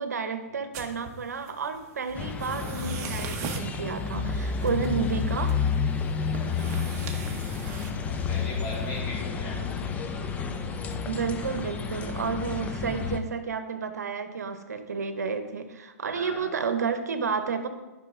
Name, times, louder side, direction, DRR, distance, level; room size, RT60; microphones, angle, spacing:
voice 1, 0.0-5.5 11.0-17.7, right 5 dB, 85° right, 9 dB, 0.9 m, -31 dB
sound 1, 0.7-9.0, right 6 dB, 35° right, 1.1 m, -42 dB
sound 2, 2.1-13.2, left 5 dB, 15° left, 0.6 m, -30 dB
sound 3, 6.2-12.6, left 4 dB, 80° left, 1.0 m, -40 dB
voice 2, 6.5-6.9 8.1-9.6 16.1-16.5, left 2 dB, 45° left, -3 dB, 2.9 m, -38 dB
11.0 x 5.6 x 3.7 m, 1.2 s
hypercardioid pair, 130°, 9 cm